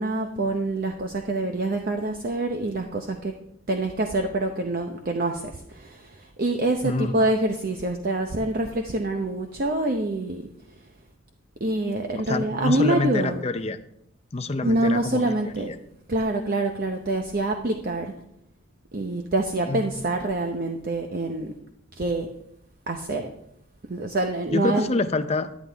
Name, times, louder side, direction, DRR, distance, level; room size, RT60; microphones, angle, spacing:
voice 1, 0.0-3.4 3.7-10.5 11.6-13.4 14.6-15.7 16.1-18.1 18.9-21.6 22.0-22.3 22.9-23.3 23.8-24.9, right 2 dB, 45° right, 4 dB, 0.7 m, -26 dB
voice 2, 6.8-7.3 12.2-13.8 14.3-15.2 15.7-15.8 19.7-19.8 24.5-25.5, left 2 dB, 30° left, 9 dB, 0.5 m, -26 dB
11.0 x 10.5 x 3.4 m, 0.76 s
head